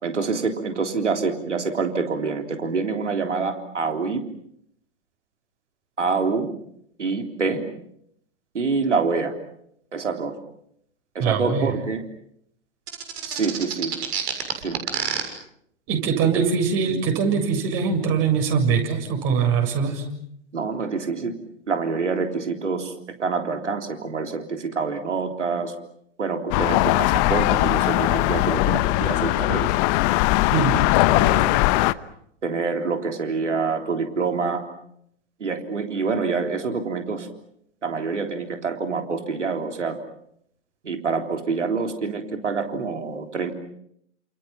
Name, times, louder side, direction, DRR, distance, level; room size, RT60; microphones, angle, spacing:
voice 1, 0.0-4.2 6.0-6.5 7.0-7.7 8.5-9.3 9.9-10.4 11.2-12.0 13.3-13.9 14.6-14.8 20.5-21.3 21.7-22.9 23.2-25.7 26.2-29.7 31.1-31.6 32.4-34.6 35.4-37.3 37.8-40.0 40.8-43.5, right 4 dB, 85° right, 5 dB, 3.6 m, -26 dB
voice 2, 11.2-11.7 13.3-13.4 15.9-20.1 29.2-29.3 30.5-30.8, right 6 dB, 40° right, 4 dB, 7.3 m, -22 dB
sound 1, 12.9-15.2, right 8 dB, 65° right, 6.9 m, -27 dB
sound 2, 26.5-31.9, left 19 dB, 40° left, 1.0 m, -20 dB
29.5 x 28.5 x 5.9 m, 0.72 s
hypercardioid pair, 110°, 35 cm